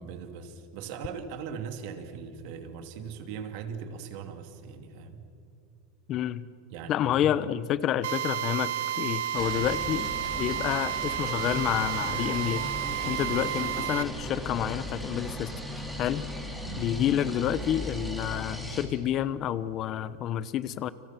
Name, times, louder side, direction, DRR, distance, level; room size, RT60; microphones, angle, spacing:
voice 1, 0.0-5.2 6.7-7.5 13.3-13.4 16.6-16.9, right 7 dB, 55° right, 7 dB, 2.6 m, -40 dB
voice 2, 6.1-6.5 6.9-10.1 10.4-12.7 13.0-15.5 16.0-16.2 16.8-20.9, left 11 dB, 35° left, 16 dB, 0.9 m, -29 dB
Drill, 8.0-14.0, right 11 dB, 80° right, 1.3 m, -31 dB
sound 1, 9.3-18.8, equal, ahead, 3.6 m, -37 dB
30.0 x 26.0 x 6.1 m, 2.6 s
supercardioid pair, 145°, 0 cm